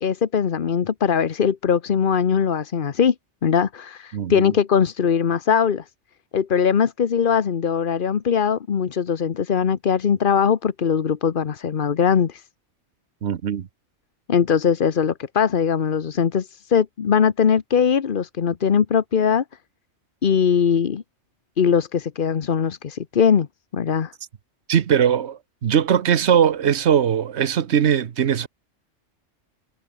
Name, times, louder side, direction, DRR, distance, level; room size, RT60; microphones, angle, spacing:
voice 1, 0.0-3.1 3.4-5.8 6.3-12.4 14.3-19.4 20.2-21.0 21.6-23.5 23.7-24.1, left 7 dB, 50° left, 1.0 m, -20 dB
voice 2, 4.1-4.5 13.2-13.7 24.7-28.5, right 8 dB, 70° right, 1.2 m, -20 dB
omnidirectional pair, 1.2 m